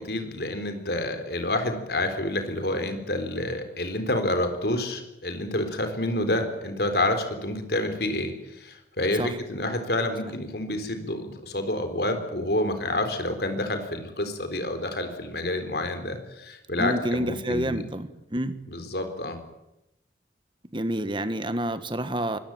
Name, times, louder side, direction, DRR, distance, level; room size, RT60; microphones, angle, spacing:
voice 1, 0.0-17.8 18.7-19.4, left 1 dB, 65° left, 7 dB, 4.0 m, -28 dB
voice 2, 16.8-18.6 20.7-22.4, right 1 dB, 25° right, 11 dB, 1.6 m, -28 dB
23.5 x 19.5 x 9.1 m, 0.89 s
head